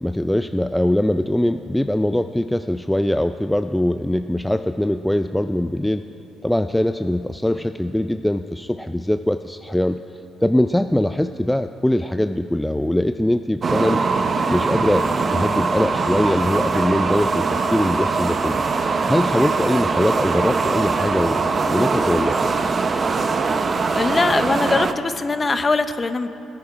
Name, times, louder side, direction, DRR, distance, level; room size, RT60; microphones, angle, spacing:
voice 1, 0.0-6.0 6.4-10.0 10.4-14.0 14.5-18.6 19.1-22.7, left 1 dB, 5° left, 9 dB, 0.3 m, -22 dB
sound 1, 13.6-24.9, right 4 dB, 40° right, 0.7 m, -22 dB
voice 2, 23.9-26.3, left 3 dB, 30° left, 11 dB, 0.7 m, -21 dB
19.0 x 9.6 x 4.9 m, 2.8 s
cardioid pair, 90°, 0 cm